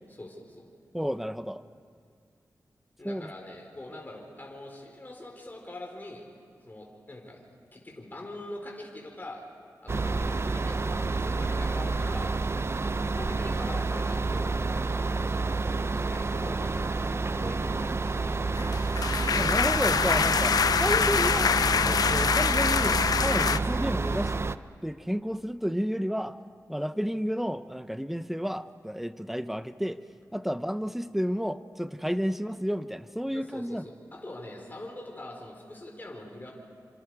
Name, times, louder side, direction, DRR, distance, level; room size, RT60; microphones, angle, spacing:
voice 1, 0.2-0.6 3.0-6.2 6.6-7.4 7.7-9.4 9.8-12.3 12.8-15.0 15.9-18.6 33.3-36.5, left 1 dB, 30° left, 0 dB, 4.3 m, -43 dB
voice 2, 0.9-1.6 3.0-3.3 19.3-24.3 24.8-26.4 26.7-30.0 30.3-33.9, equal, 5° right, 12 dB, 0.9 m, -31 dB
sound 1, 9.9-24.6, right 3 dB, 40° right, 0.7 m, -29 dB
sound 2, 18.6-23.6, left 6 dB, 75° left, 0.5 m, -25 dB
27.5 x 26.5 x 4.9 m, 2.2 s
cardioid pair, 60°, 7 cm